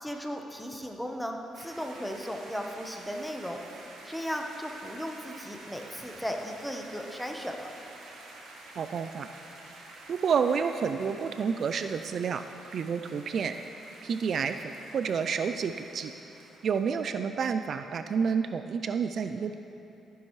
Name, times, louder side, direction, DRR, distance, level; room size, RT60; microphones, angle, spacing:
voice 1, 0.0-3.6 4.0-7.7, equal, ahead, 2 dB, 1.0 m, -36 dB
sound 1, 1.5-17.2, right 2 dB, 90° right, 1.6 m, -49 dB
voice 2, 8.8-9.3 10.1-12.4 12.7-13.5 14.0-14.6 14.9-16.1 16.6-19.5, right 6 dB, 55° right, 9 dB, 0.3 m, -29 dB
13.5 x 10.0 x 3.2 m, 3.0 s
cardioid pair, 90°, 0 cm